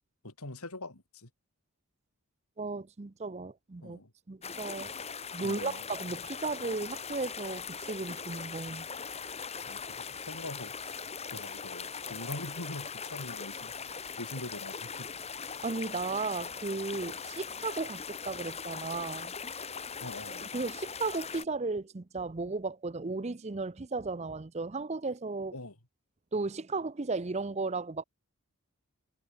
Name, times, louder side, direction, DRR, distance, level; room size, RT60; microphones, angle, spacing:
voice 1, 0.2-1.3 3.8-4.1 5.4-5.8 9.5-11.0 11.3-13.7 14.2-15.1 20.0-20.5 25.5-25.7, left 2 dB, 85° left, 4.5 m, -43 dB
voice 2, 2.6-4.0 4.3-5.0 5.3-8.9 15.6-19.3 20.5-25.5 26.3-28.0, right 3 dB, 30° right, 0.5 m, -35 dB
sound 1, 4.4-21.4, left 6 dB, 30° left, 2.8 m, -40 dB
head